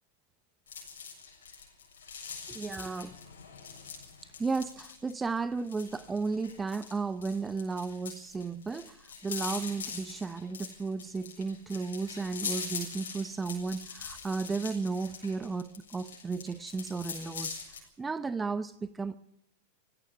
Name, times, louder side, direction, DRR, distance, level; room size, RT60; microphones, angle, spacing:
sound 1, 0.7-17.8, left 6 dB, 75° left, 7.2 m, -42 dB
voice 1, 2.5-3.2 4.2-19.2, right 4 dB, 15° right, 14 dB, 0.7 m, -34 dB
18.0 x 16.0 x 9.6 m, 0.79 s
hypercardioid pair, 100°, 0 cm